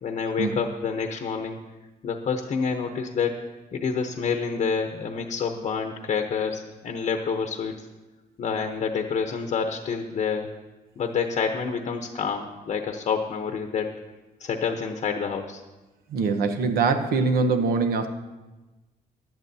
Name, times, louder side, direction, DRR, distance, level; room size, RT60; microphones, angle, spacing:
voice 1, 0.0-1.6 2.0-3.3 3.7-7.9 8.4-10.5 11.0-13.9 14.4-15.6, left 6 dB, 50° left, 5 dB, 0.8 m, -28 dB
voice 2, 16.1-18.1, right 4 dB, 90° right, 7 dB, 1.0 m, -23 dB
16.0 x 11.0 x 2.7 m, 1.1 s
cardioid pair, 140°, 15 cm